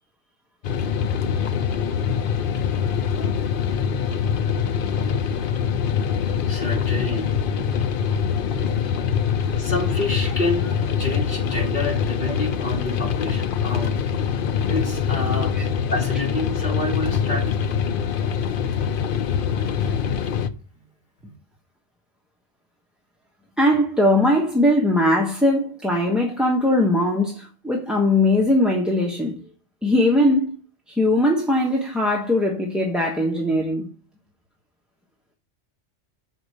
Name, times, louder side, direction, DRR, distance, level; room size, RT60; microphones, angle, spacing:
sound 1, 0.6-20.5, left 7 dB, 55° left, 0.7 m, -24 dB
voice 1, 6.5-7.4 9.5-14.2 14.7-17.7 21.2-21.3, left 1 dB, 40° left, 2.8 m, -29 dB
voice 2, 9.1-9.6 15.5-15.6 23.6-29.4 29.8-30.6 30.9-33.9, left 1 dB, ahead, 1.0 m, -20 dB
6.4 x 4.9 x 6.7 m
omnidirectional pair, 1.3 m